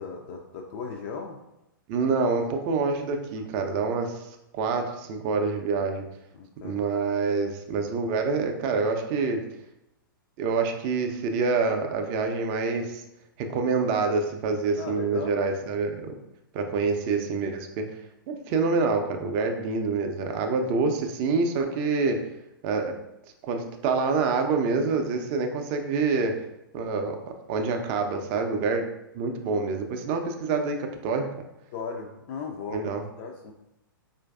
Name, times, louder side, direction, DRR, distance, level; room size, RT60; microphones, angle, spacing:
voice 1, 0.0-1.4 3.4-3.5 6.4-6.8 14.8-15.4 20.4-20.5 31.7-32.8 33.2-33.5, left 5 dB, 35° left, 1 dB, 0.3 m, -37 dB
voice 2, 1.9-6.1 6.6-9.4 10.4-13.0 13.4-16.1 16.5-17.8 18.3-22.2 22.6-22.9 23.4-26.3 26.7-27.2 27.5-28.9 29.1-31.3 32.7-33.0, right 4 dB, 30° right, 5 dB, 0.4 m, -26 dB
4.5 x 2.5 x 2.3 m, 0.87 s
figure-of-eight pair, 105°, 12 cm